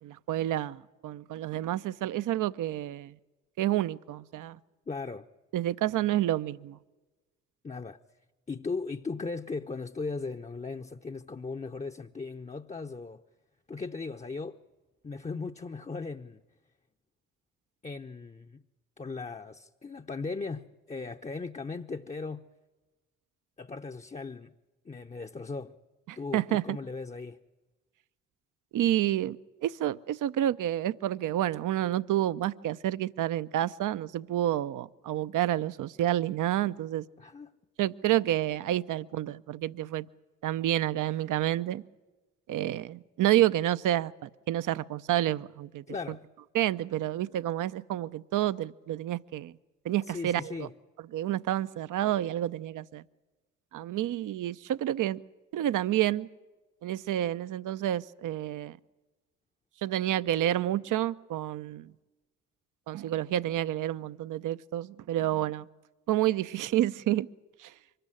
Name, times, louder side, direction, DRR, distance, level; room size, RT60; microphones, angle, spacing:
voice 1, 0.0-3.2 3.6-4.6 5.5-6.8 26.1-26.8 28.7-37.1 37.8-40.1 40.4-41.8 42.5-45.8 46.5-49.6 49.8-50.7 51.1-53.0 53.7-55.2 55.5-56.3 56.8-58.8 59.8-61.9 62.9-65.7 66.1-67.3 67.6-67.7, right 13 dB, 60° right, 0.7 m, -29 dB
voice 2, 4.9-5.3 7.6-8.0 8.5-13.2 13.7-14.6 15.0-16.4 17.8-18.6 19.0-22.5 23.6-24.5 24.8-25.8 26.2-27.4 37.2-37.5 45.9-46.2 50.1-50.7, left 4 dB, 20° left, 0.8 m, -37 dB
24.0 x 13.5 x 10.0 m
hypercardioid pair, 45°, 35 cm